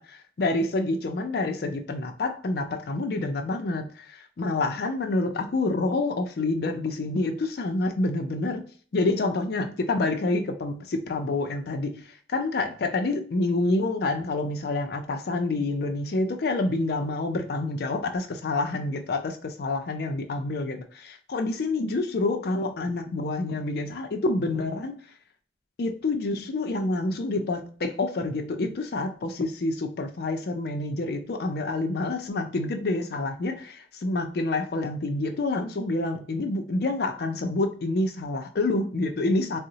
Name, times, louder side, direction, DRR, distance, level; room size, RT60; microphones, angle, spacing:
voice 1, 0.0-8.6 8.9-25.0 25.8-39.6, left 2 dB, 60° left, 0.4 m, -28 dB
3.7 x 2.0 x 2.7 m
head